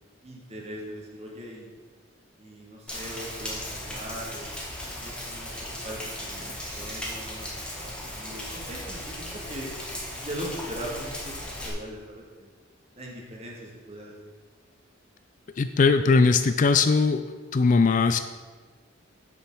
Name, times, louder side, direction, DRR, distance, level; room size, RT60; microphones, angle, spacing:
voice 1, 0.2-1.7 2.4-4.5 5.0-5.5 5.8-9.7 10.2-12.5 13.0-14.2, equal, 35° right, -2 dB, 2.0 m, -40 dB
Rain, 2.9-11.7, left 1 dB, 5° left, 1.8 m, -37 dB
voice 2, 15.6-17.2 17.5-18.2, left 4 dB, 40° left, 9 dB, 0.4 m, -20 dB
7.1 x 6.7 x 6.2 m, 1.4 s
head